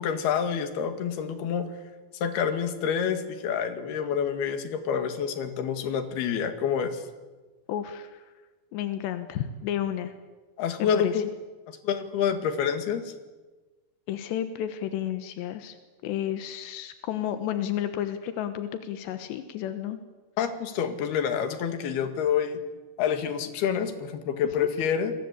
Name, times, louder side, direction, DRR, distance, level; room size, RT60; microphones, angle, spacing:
voice 1, 0.0-1.7 2.2-7.0 10.6-11.3 11.7-13.1 20.4-22.6 23.0-25.1, left 7 dB, 70° left, 8 dB, 3.9 m, -27 dB
voice 2, 7.7-8.2 8.7-10.1 10.8-11.2 14.1-15.8 16.0-20.0 24.6-24.7, left 10 dB, 90° left, 9 dB, 3.4 m, -32 dB
28.5 x 22.5 x 8.4 m, 1.3 s
omnidirectional pair, 4.8 m